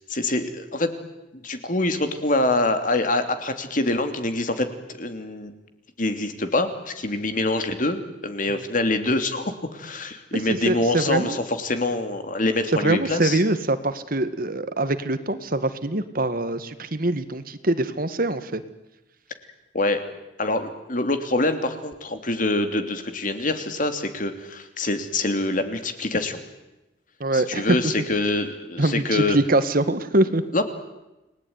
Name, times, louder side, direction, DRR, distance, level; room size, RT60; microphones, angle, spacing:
voice 1, 0.1-0.9 1.4-4.7 4.9-5.5 6.0-13.4 19.7-20.0 20.4-26.4 27.3-29.4 30.5-30.6, left 2 dB, 50° left, 8 dB, 3.0 m, -25 dB
voice 2, 10.3-11.4 12.8-18.6 27.2-27.8 28.8-30.4, right 2 dB, 55° right, 11 dB, 1.8 m, -24 dB
29.5 x 19.5 x 9.7 m, 1.0 s
head